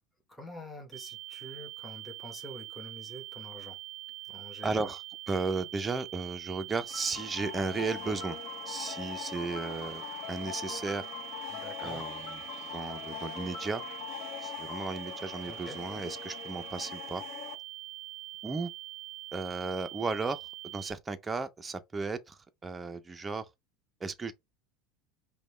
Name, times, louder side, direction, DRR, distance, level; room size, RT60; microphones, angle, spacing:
voice 1, 0.3-3.8 4.3-4.9 11.5-12.1 15.5-15.8, equal, ahead, 0.9 m, -46 dB
sound 1, 0.9-20.9, right 19 dB, 80° right, 0.4 m, -44 dB
voice 2, 4.6-5.0 5.3-8.4 8.7-11.0 11.8-12.4 12.7-13.8 14.4-17.2 18.4-18.7 19.3-20.4 20.6-23.5 24.0-24.3, right 4 dB, 15° right, 0.4 m, -35 dB
sound 2, 6.9-17.5, left 10 dB, 55° left, 0.7 m, -42 dB
5.1 x 2.1 x 3.1 m
supercardioid pair, 150°, 0 cm